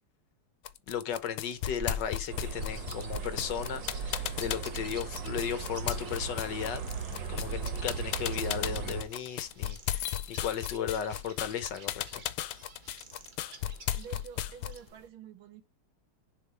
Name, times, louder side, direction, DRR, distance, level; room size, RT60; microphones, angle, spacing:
sound 1, 0.7-14.9, left 12 dB, 80° left, 1.5 m, -35 dB
voice 1, 0.9-6.8 7.3-12.2, left 8 dB, 65° left, 1.3 m, -35 dB
sound 2, 1.6-15.1, right 3 dB, 40° right, 0.7 m, -48 dB
sound 3, 2.3-9.0, right 6 dB, 60° right, 1.9 m, -38 dB
voice 2, 14.0-15.6, right 7 dB, 80° right, 1.7 m, -48 dB
6.7 x 3.8 x 4.8 m
omnidirectional pair, 2.3 m